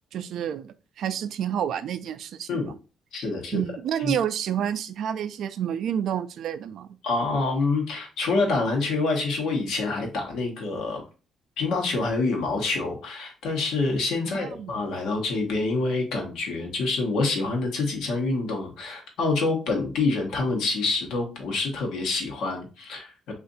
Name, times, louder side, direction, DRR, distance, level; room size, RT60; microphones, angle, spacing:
voice 1, 0.1-2.7 3.5-6.9 14.3-14.7, right 9 dB, 75° right, 0.3 m, -29 dB
voice 2, 3.1-3.6 4.0-4.2 7.0-11.0 11.6-23.3, left 3 dB, 85° left, 1.0 m, -26 dB
2.6 x 2.5 x 3.9 m
cardioid pair, 90°, 0 cm